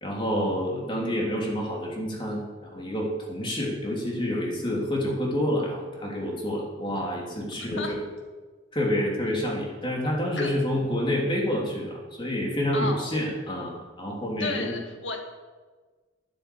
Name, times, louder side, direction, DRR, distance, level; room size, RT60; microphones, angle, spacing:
voice 1, 0.0-8.0 8.7-14.7, equal, 25° left, -2 dB, 3.3 m, -28 dB
voice 2, 7.5-7.9 10.4-10.5 12.7-13.1 14.4-15.2, left 2 dB, 75° left, 3 dB, 2.1 m, -32 dB
12.5 x 9.8 x 7.0 m, 1.4 s
head